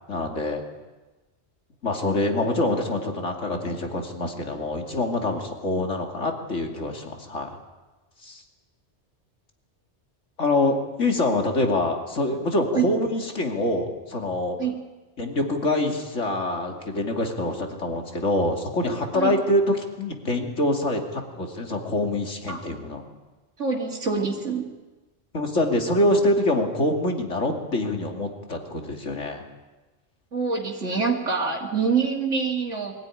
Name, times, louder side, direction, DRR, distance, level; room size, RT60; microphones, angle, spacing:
voice 1, 0.1-0.6 1.8-7.6 8.2-8.4 10.4-14.6 15.2-23.0 25.3-29.4, left 1 dB, 90° left, 2 dB, 3.0 m, -25 dB
voice 2, 23.6-24.6 30.3-32.9, right 5 dB, 90° right, -1 dB, 2.9 m, -25 dB
22.5 x 15.5 x 9.8 m, 1.2 s
omnidirectional pair, 1.2 m